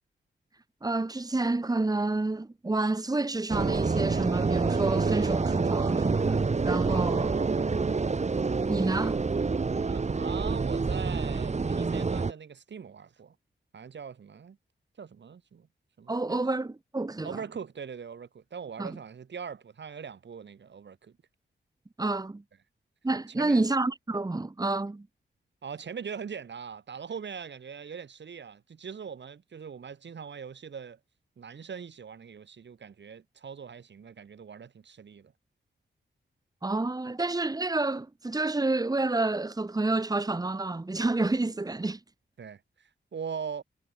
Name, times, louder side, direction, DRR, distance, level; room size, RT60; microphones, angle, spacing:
voice 1, 0.8-7.3 8.7-9.2 16.1-17.3 18.8-18.9 22.0-22.4 23.0-25.1 36.6-42.0, right 2 dB, 20° right, 3.2 m, -29 dB
sound 1, 3.5-12.3, right 4 dB, 35° right, 4.4 m, -27 dB
voice 2, 6.9-7.7 9.8-13.4 13.7-14.6 15.0-15.7 16.0-16.4 17.2-21.2 23.4-23.7 25.6-31.0 31.4-35.3 42.4-43.6, right 6 dB, 65° right, 7.4 m, -41 dB
wide cardioid pair, 155°, 20 cm